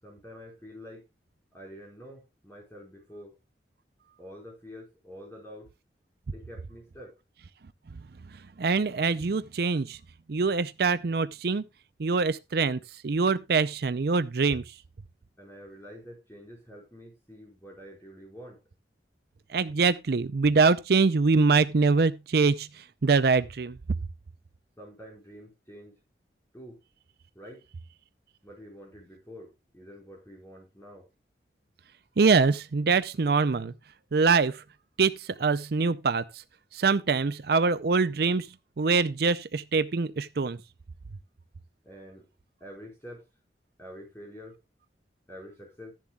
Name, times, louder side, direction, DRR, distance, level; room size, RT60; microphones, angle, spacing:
voice 1, 0.0-1.1 1.5-3.4 4.2-5.7 6.3-7.2 15.4-18.6 24.8-26.0 26.5-26.8 27.3-27.7 28.4-31.1 41.8-42.3 42.6-43.3 43.8-44.6 45.3-45.9, equal, 15° left, 4.6 m, -47 dB
voice 2, 8.6-10.0 10.3-11.6 12.0-14.7 19.5-23.8 32.2-33.7 34.1-34.6 35.0-36.2 36.7-38.5 38.8-40.6, right 4 dB, 60° right, 0.5 m, -24 dB
14.5 x 10.5 x 2.3 m
head